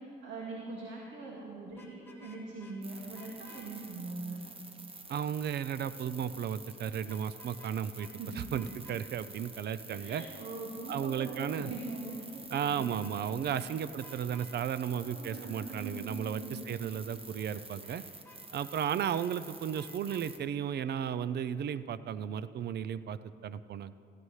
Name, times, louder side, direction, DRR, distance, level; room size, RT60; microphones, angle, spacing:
voice 1, 0.0-4.4 8.2-8.7 9.9-13.1 13.4-13.7 14.8-16.7 17.8-18.1, right 3 dB, 75° right, -3 dB, 2.0 m, -42 dB
Vehicle horn car horn honking, 1.7-2.8 3.1-3.6 7.1-7.7 8.0-8.1 8.6-9.0 12.4-13.2 13.5-13.6 14.0-14.5 18.3-19.3 19.8-20.3, left 3 dB, 10° left, 2.0 m, -56 dB
sound 1, 2.8-20.4, right 2 dB, 30° right, 1.3 m, -49 dB
voice 2, 5.1-8.1 8.4-10.2 10.9-11.7 12.5-18.0 18.5-24.0, right 8 dB, 55° right, 15 dB, 0.5 m, -34 dB
16.5 x 15.5 x 3.2 m, 2.7 s
cardioid pair, 90°, 20 cm